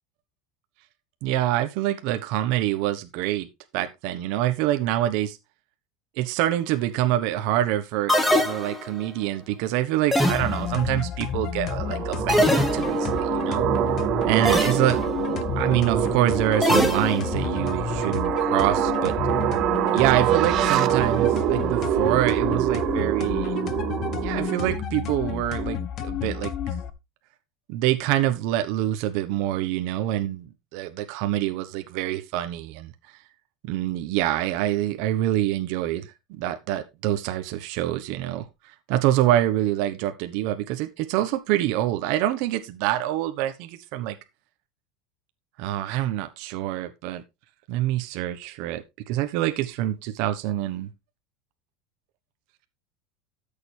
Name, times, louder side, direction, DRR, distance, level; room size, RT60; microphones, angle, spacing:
voice 1, 1.2-3.5 3.7-5.4 6.2-13.7 14.3-19.1 19.9-23.6 24.2-26.5 27.7-32.9 33.6-44.2 45.6-47.2 47.7-50.9, right 13 dB, 50° right, 8 dB, 1.1 m, -26 dB
sound 1, 8.1-9.1 10.1-10.9 12.3-13.2 14.5-15.0 16.6-17.5, equal, 5° left, 1.3 m, -23 dB
sound 2, 10.3-26.9, left 8 dB, 30° left, 0.9 m, -30 dB
sound 3, 11.7-24.8, right 13 dB, 35° right, 0.7 m, -25 dB
13.0 x 6.9 x 3.3 m, 0.23 s
supercardioid pair, 170°, 0 cm